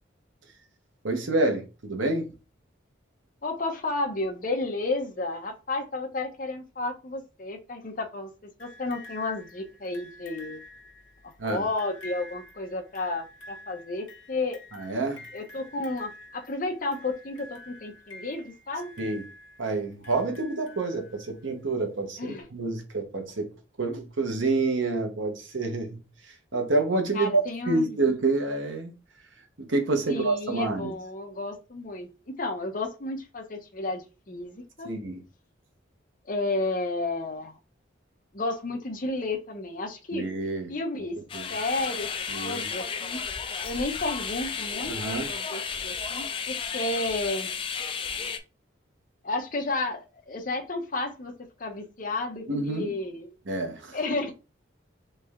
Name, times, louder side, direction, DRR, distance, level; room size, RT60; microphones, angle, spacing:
voice 1, 1.0-2.3 11.4-11.7 14.7-15.3 19.0-19.3 19.6-28.9 29.3-30.9 34.8-35.2 40.1-40.7 41.2-41.5 42.3-42.7 44.9-45.3 52.5-53.0 53.5-54.0, right 3 dB, 80° right, 1.0 m, -28 dB
voice 2, 3.4-10.6 11.4-14.6 15.3-18.9 22.2-22.4 27.1-27.9 30.1-34.9 36.3-37.5 38.3-40.3 40.7-41.2 41.5-42.1 42.4-43.2 43.6-44.9 45.3-47.5 49.2-50.0 50.3-51.3 51.6-53.3 53.9-54.3, left 2 dB, 45° left, 0.7 m, -32 dB
sound 1, 8.6-21.4 22.4-22.5, left 2 dB, 75° left, 0.9 m, -48 dB
sound 2, 41.3-48.4, left 6 dB, 25° left, 0.3 m, -33 dB
3.3 x 3.3 x 3.5 m
head